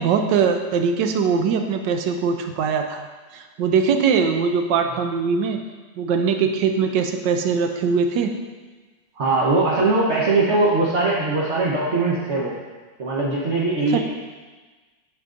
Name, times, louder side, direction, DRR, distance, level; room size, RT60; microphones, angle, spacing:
voice 1, 0.0-3.0 3.3-5.6 6.0-8.3 13.9-14.0, right 6 dB, 75° right, 5 dB, 1.2 m, -21 dB
voice 2, 9.1-12.5 13.0-14.0, right 3 dB, 45° right, -6 dB, 1.0 m, -20 dB
9.9 x 5.9 x 2.5 m, 1.3 s
omnidirectional pair, 2.0 m